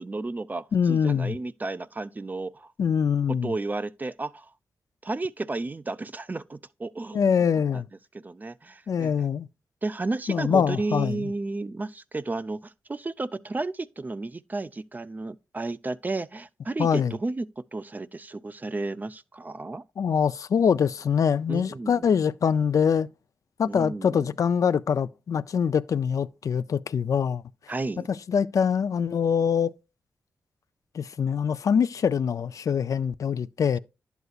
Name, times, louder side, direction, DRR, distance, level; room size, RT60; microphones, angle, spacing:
voice 1, 0.0-2.7 3.3-4.5 5.0-7.3 8.2-9.1 9.8-19.8 21.5-22.2 23.7-24.3 27.7-28.1, right 3 dB, 30° right, 0.4 m, -33 dB
voice 2, 0.7-1.4 2.8-3.5 7.1-7.9 8.9-9.5 10.3-11.3 16.8-17.1 20.0-23.1 23.6-27.4 28.1-29.7 30.9-33.8, left 7 dB, 60° left, 0.4 m, -24 dB
11.0 x 8.0 x 2.4 m
cardioid pair, 55°, 6 cm